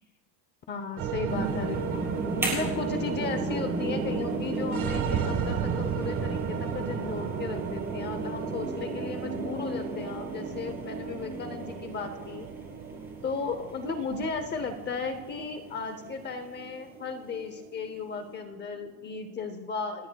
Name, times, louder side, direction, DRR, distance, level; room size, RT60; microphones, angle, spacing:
voice 1, 0.7-2.1 2.4-12.5 13.2-20.1, left 4 dB, 20° left, 8 dB, 0.6 m, -35 dB
sound 1, 1.0-19.4, right 6 dB, 35° right, 1.3 m, -34 dB
sound 2, 1.3-16.2 16.6-16.8, right 2 dB, 5° right, 3.5 m, -36 dB
28.0 x 17.5 x 2.2 m, 1.3 s
cardioid pair, 175°, 48 cm